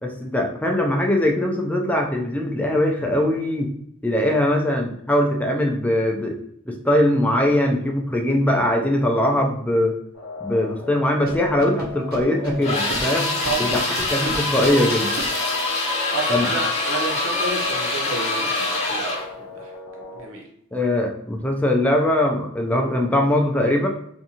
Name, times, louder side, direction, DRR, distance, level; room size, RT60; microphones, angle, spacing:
voice 1, 0.0-3.7 4.0-6.4 6.7-10.0 10.4-15.1 16.3-16.5 20.7-23.9, left 1 dB, 5° left, 1 dB, 0.3 m, -21 dB
sound 1, 10.1-20.2, left 3 dB, 85° left, 0.5 m, -37 dB
Scratching (performance technique), 11.3-12.6 12.9-13.0 13.4-14.7 15.2-15.3, right 2 dB, 45° right, 0.6 m, -34 dB
sound 2, 12.6-19.3, left 2 dB, 35° left, 0.7 m, -24 dB
voice 2, 16.1-19.2 19.4-19.7 20.1-20.5, right 3 dB, 80° right, -1 dB, 0.8 m, -30 dB
2.6 x 2.3 x 2.8 m, 0.72 s
head